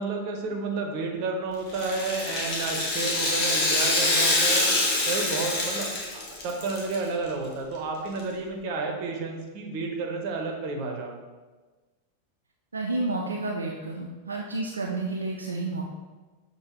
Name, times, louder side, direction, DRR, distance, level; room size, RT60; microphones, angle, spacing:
voice 1, 0.0-4.7 5.1-11.2, right 3 dB, 45° right, 2 dB, 0.7 m, -31 dB
Rattle (instrument), 1.7-7.0 7.3-7.4 8.2-8.3, left 2 dB, 40° left, 0.9 m, -25 dB
voice 2, 12.7-15.8, right 2 dB, 75° right, 0 dB, 0.4 m, -30 dB
6.4 x 2.6 x 2.9 m, 1.3 s
figure-of-eight pair, 90°, 0 cm